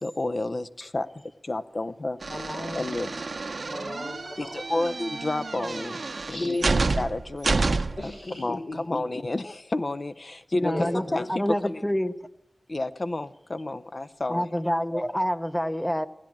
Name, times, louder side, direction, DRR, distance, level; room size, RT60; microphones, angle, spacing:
voice 1, 0.0-2.2 2.7-3.3 4.4-6.6 7.0-7.7 8.0-8.1 8.4-11.9 12.7-14.5, left 2 dB, 55° left, 11 dB, 0.6 m, -31 dB
sound 1, 2.2-8.1, right 3 dB, 75° right, 0.6 m, -29 dB
voice 2, 2.3-2.8 3.7-4.5 6.2-6.8 8.0-8.8 10.6-10.9, left 2 dB, 75° left, -2 dB, 3.2 m, -34 dB
voice 3, 10.5-11.0 11.3-12.1 14.3-16.1, equal, 10° left, 11 dB, 0.7 m, -27 dB
16.0 x 10.5 x 7.4 m, 0.85 s
wide cardioid pair, 50°, 0 cm